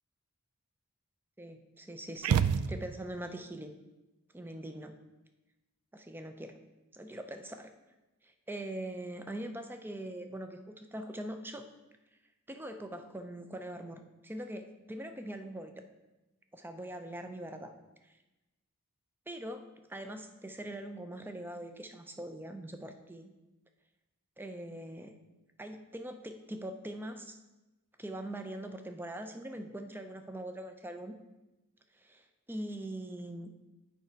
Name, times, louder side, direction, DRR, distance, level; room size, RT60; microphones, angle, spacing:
voice 1, 1.4-3.7 4.3-4.9 5.9-6.6 6.9-7.7 8.2-11.7 12.5-15.7 16.5-17.7 19.3-23.3 24.4-25.1 25.6-27.4 28.0-31.2 31.9-33.5, right 1 dB, 10° right, 7 dB, 0.5 m, -42 dB
sound 1, 2.2-3.3, right 8 dB, 85° right, 0.3 m, -28 dB
8.1 x 5.0 x 4.5 m, 1.0 s
head